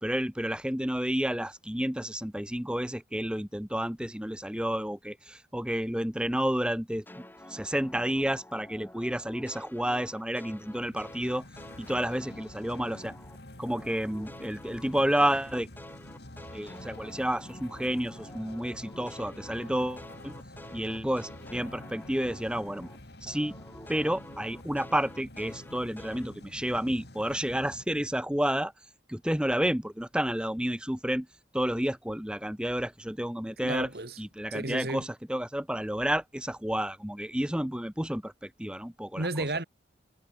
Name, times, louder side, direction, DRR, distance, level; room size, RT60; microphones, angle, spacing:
voice 1, 0.0-7.0 7.5-11.4 11.8-13.1 13.6-15.7 16.5-20.3 20.7-22.9 23.2-23.5 23.9-28.7 29.1-31.3 31.5-33.9 34.2-39.3, equal, 5° right, 1.3 m, -30 dB
sound 1, 7.1-13.4 13.7-23.0 23.3-26.3, left 1 dB, 10° left, 3.2 m, -49 dB
sound 2, 10.5-27.9, left 1 dB, 70° left, 3.5 m, -48 dB
voice 2, 33.6-34.2 34.5-35.0 39.2-39.6, right 2 dB, 60° right, 2.3 m, -32 dB
head